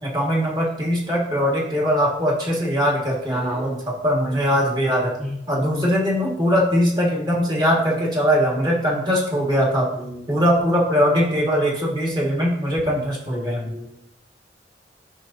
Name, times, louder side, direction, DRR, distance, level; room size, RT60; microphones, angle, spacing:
voice 1, 0.0-5.2 5.5-9.9 10.3-13.7, equal, 25° right, -3 dB, 1.9 m, -21 dB
voice 2, 3.3-3.7 5.2-5.8 9.9-10.4 13.6-13.9, left 1 dB, ahead, -7 dB, 1.1 m, -33 dB
10.5 x 5.6 x 2.8 m, 0.81 s
head